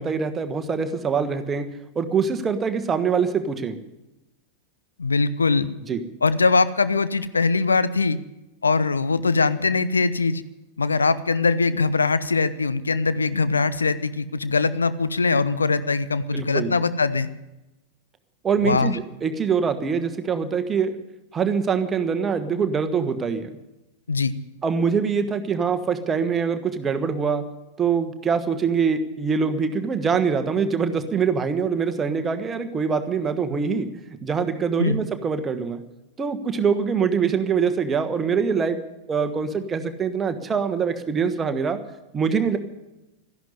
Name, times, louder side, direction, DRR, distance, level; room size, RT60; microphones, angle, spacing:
voice 1, 0.0-1.7 1.9-3.8 5.9-6.0 16.3-16.7 18.4-21.0 21.3-23.5 24.6-27.4 27.8-33.9 34.2-35.8 36.2-38.8 39.1-41.8 42.1-42.6, right 6 dB, 20° right, 8 dB, 1.3 m, -24 dB
voice 2, 5.0-5.7 6.2-8.2 8.6-10.4 10.8-17.3 18.6-19.0 24.1-24.3 34.8-35.0, left 4 dB, 75° left, 14 dB, 0.6 m, -21 dB
13.5 x 11.0 x 9.6 m, 0.98 s
figure-of-eight pair, 90°, 0 cm